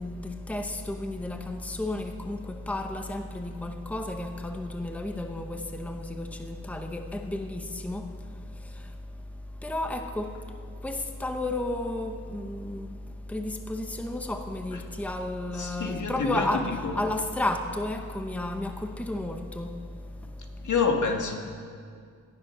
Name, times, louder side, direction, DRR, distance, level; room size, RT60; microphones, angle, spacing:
voice 1, 0.0-8.0 9.6-10.3 10.8-12.9 13.3-19.7, left 1 dB, 5° left, 0.9 m, -32 dB
voice 2, 15.5-17.0 20.6-21.3, left 5 dB, 70° left, 1.8 m, -27 dB
18.5 x 13.0 x 6.1 m
wide cardioid pair, 165°, 32 cm